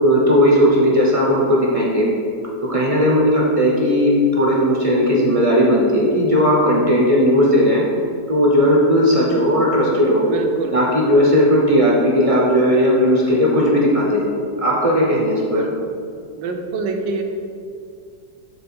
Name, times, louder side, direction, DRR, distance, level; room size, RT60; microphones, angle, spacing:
voice 1, 0.0-2.1 2.7-7.8 8.3-10.3 10.7-14.2 14.6-15.6, equal, 45° right, -4 dB, 0.4 m, -16 dB
voice 2, 10.2-10.8 15.4-15.9 16.4-17.2, right 4 dB, 80° right, 4 dB, 1.4 m, -27 dB
7.5 x 3.7 x 4.4 m, 2.4 s
omnidirectional pair, 2.0 m